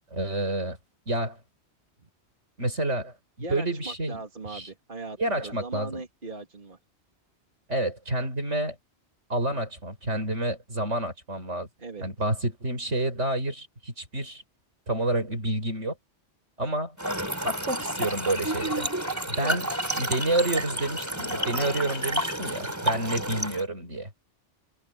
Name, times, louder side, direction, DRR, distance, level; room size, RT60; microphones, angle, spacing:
voice 1, 0.1-0.8 1.1-1.4 2.6-3.1 3.5-4.2 4.5-4.7 5.2-6.0 7.7-8.8 9.3-11.7 12.0-14.4 14.9-16.0 16.6-17.0 17.4-18.9 19.3-19.7 19.9-24.1, right 1 dB, 80° right, 6.9 m, -29 dB
voice 2, 3.4-6.8 11.8-12.0 19.4-19.6, right 3 dB, 45° right, 2.7 m, -39 dB
Trickle dribble / Fill (with liquid), 17.0-23.6, right 1 dB, 15° right, 4.1 m, -30 dB
omnidirectional pair, 1.2 m